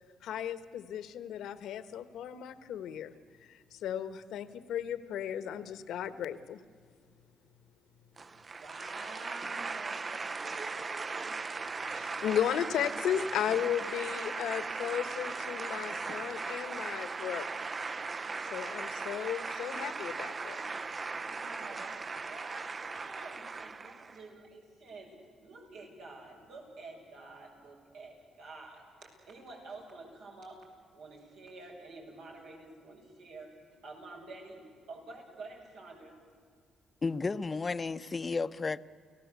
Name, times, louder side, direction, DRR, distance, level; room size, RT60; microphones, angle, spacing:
voice 1, 0.2-3.1 3.5-6.6 11.9-17.5 18.5-20.6, left 10 dB, 80° left, 13 dB, 1.3 m, -35 dB
sound 1, 8.2-24.2, right 4 dB, 35° right, 0.6 m, -38 dB
voice 2, 8.3-11.7 21.1-25.1 25.4-30.6 30.9-33.5 33.8-36.1, right 3 dB, 85° right, -1 dB, 7.2 m, -49 dB
voice 3, 37.0-38.8, left 4 dB, 30° left, 14 dB, 0.7 m, -32 dB
30.0 x 17.5 x 8.3 m, 2.1 s
cardioid pair, 90°, 0 cm